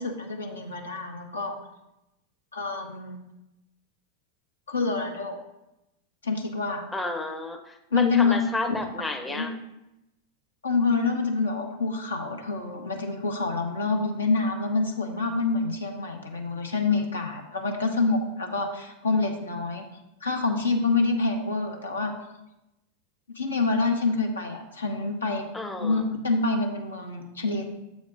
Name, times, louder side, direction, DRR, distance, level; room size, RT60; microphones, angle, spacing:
voice 1, 0.0-1.6 2.5-3.2 4.7-5.4 6.2-6.8 7.9-8.4 9.3-9.5 10.6-19.8 20.2-22.1 23.3-25.4 25.8-27.6, left 3 dB, 70° left, 3 dB, 1.0 m, -27 dB
voice 2, 6.9-9.5 25.5-26.0, left 2 dB, 5° left, 3 dB, 0.6 m, -31 dB
7.4 x 4.2 x 5.0 m, 0.90 s
figure-of-eight pair, 90°, 0 cm